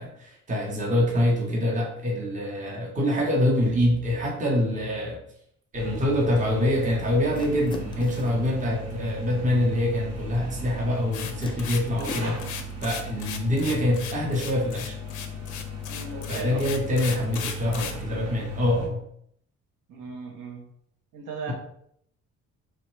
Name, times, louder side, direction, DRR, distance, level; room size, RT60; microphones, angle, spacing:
voice 1, 0.0-5.2 5.7-15.0 16.3-19.0 21.5-21.6, left 1 dB, 25° right, -2 dB, 0.8 m, -25 dB
sound 1, 5.7-18.9, left 1 dB, 55° right, 1.1 m, -36 dB
sound 2, 7.3-8.4 10.3-10.4 11.4-12.5, left 3 dB, 15° left, 0.3 m, -40 dB
sound 3, 11.1-18.0, left 8 dB, 80° left, 0.5 m, -36 dB
voice 2, 11.9-12.6 15.9-16.6 19.9-20.7 21.1-21.5, right 4 dB, 85° right, 2 dB, 0.8 m, -38 dB
3.0 x 2.1 x 3.1 m, 0.68 s
cardioid pair, 90°, 30 cm